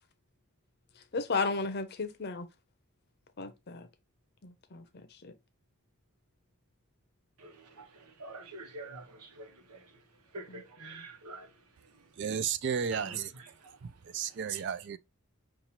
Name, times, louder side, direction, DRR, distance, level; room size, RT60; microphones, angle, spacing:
voice 1, 1.1-2.5 3.4-3.9 4.4-5.3 10.5-11.0, left 4 dB, 45° left, 0.6 m, -35 dB
voice 2, 7.4-9.9 10.3-11.5 12.9-13.2 13.6-13.8, right 3 dB, 90° right, 1.0 m, -46 dB
voice 3, 12.2-13.3 13.8-15.0, right 7 dB, 50° right, 0.4 m, -33 dB
5.4 x 2.4 x 2.8 m
head